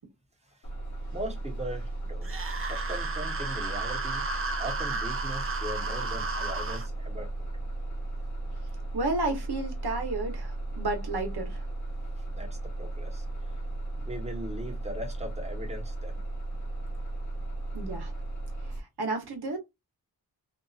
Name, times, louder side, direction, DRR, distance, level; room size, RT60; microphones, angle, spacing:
Bus, 0.6-18.8, right 2 dB, 45° left, 1.1 m, -35 dB
voice 1, 1.1-2.3 2.7-4.2 4.6-7.3 12.2-13.5 14.0-16.2, equal, 15° right, 1.0 m, -39 dB
sound 1, 2.2-6.9, right 3 dB, 35° right, 0.5 m, -33 dB
voice 2, 8.9-11.6 17.7-18.1 18.7-19.6, right 2 dB, 70° right, 1.1 m, -32 dB
2.7 x 2.5 x 2.4 m
wide cardioid pair, 100°, 40 cm